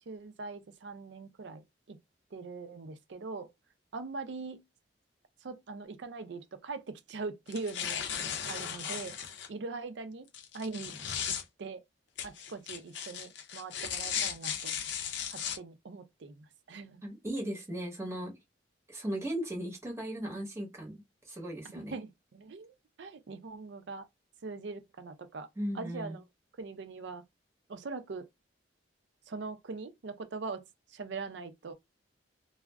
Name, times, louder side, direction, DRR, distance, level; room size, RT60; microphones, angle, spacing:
voice 1, 0.1-2.0 2.3-3.5 3.9-4.6 5.4-9.1 9.5-10.3 10.5-11.0 11.3-11.8 12.2-14.7 15.3-17.0 21.7-24.0 24.4-25.5 25.7-26.2 26.6-27.2 27.7-28.3 29.3-30.6 30.9-31.7, right 4 dB, 70° right, 0.5 m, -42 dB
sound 1, 7.5-9.5 10.3-11.4 12.2-15.6, left 8 dB, 70° left, 0.5 m, -36 dB
voice 2, 17.0-18.3 18.9-22.0 25.6-26.2, right 1 dB, 15° right, 0.9 m, -37 dB
2.4 x 2.0 x 3.3 m
head